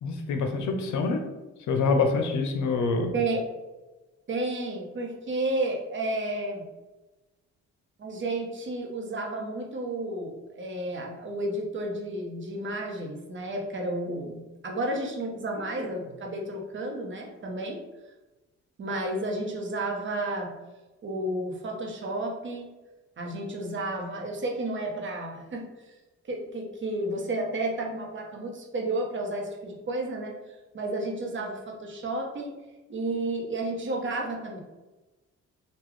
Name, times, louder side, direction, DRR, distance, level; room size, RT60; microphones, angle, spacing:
voice 1, 0.0-1.2 1.7-3.1, left 4 dB, 75° left, 5 dB, 0.6 m, -26 dB
voice 2, 3.1-3.4 4.3-6.6 8.0-17.8 18.8-20.5 21.0-22.7 23.2-25.7 26.3-30.3 30.7-32.5 32.9-34.6, right 2 dB, 40° right, 1 dB, 0.8 m, -32 dB
3.7 x 2.3 x 3.1 m, 1.1 s
cardioid pair, 90°, 30 cm